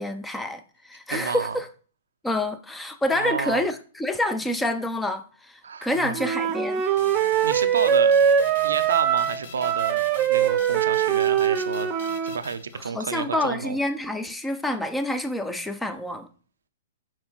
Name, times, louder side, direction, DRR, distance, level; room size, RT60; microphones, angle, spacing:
voice 1, 0.0-1.7 2.2-6.8 12.9-16.3, left 1 dB, 5° left, 0.7 m, -27 dB
voice 2, 1.1-1.6 3.1-3.6 5.6-6.2 6.7-8.1 8.6-10.0 10.3-11.9 12.2-13.8, right 5 dB, 80° right, 0.6 m, -31 dB
Wind instrument woodwind instrument, 6.1-12.4, right 9 dB, 30° right, 0.8 m, -22 dB
sound 1, 7.0-13.3, left 6 dB, 60° left, 1.1 m, -44 dB
6.0 x 4.4 x 4.5 m
hypercardioid pair, 120°, 0 cm